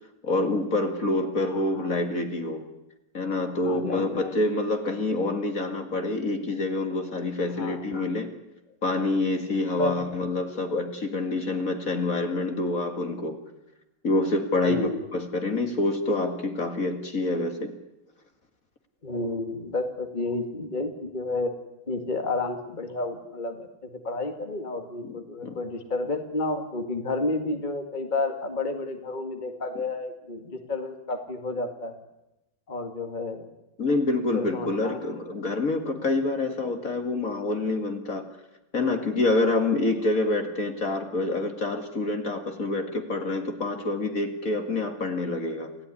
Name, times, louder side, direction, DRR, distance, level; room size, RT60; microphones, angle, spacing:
voice 1, 0.2-2.7 3.1-8.3 8.8-13.4 14.0-17.7 25.0-25.1 25.4-25.6 33.8-38.2 38.7-45.7, left 2 dB, 45° left, 6 dB, 2.5 m, -27 dB
voice 2, 3.6-4.2 7.5-7.8 9.8-10.0 14.6-15.0 19.0-21.5 21.9-32.0 32.7-33.5 34.3-35.0, left 2 dB, 25° left, 6 dB, 2.2 m, -31 dB
29.0 x 16.0 x 9.9 m, 0.93 s
omnidirectional pair, 2.0 m